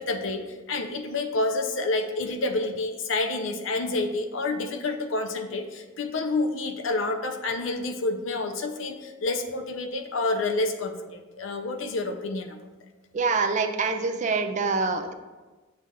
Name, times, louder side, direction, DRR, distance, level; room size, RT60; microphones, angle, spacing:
voice 1, 0.0-12.6, left 2 dB, 70° left, 6 dB, 0.6 m, -29 dB
voice 2, 13.1-15.1, right 4 dB, 35° right, 5 dB, 0.4 m, -25 dB
7.2 x 2.4 x 5.5 m, 1.2 s
head